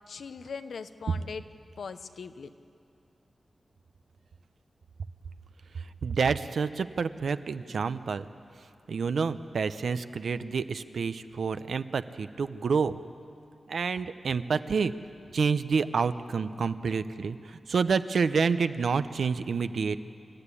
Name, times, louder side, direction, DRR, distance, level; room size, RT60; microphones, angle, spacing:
voice 1, 0.1-1.4 1.8-2.5, left 5 dB, 85° left, 11 dB, 0.8 m, -40 dB
voice 2, 6.0-8.3 8.9-13.0 13.7-14.9 15.3-17.4 17.7-20.0, right 5 dB, 80° right, 12 dB, 0.7 m, -28 dB
27.5 x 14.0 x 9.9 m, 2.6 s
wide cardioid pair, 120°, 0 cm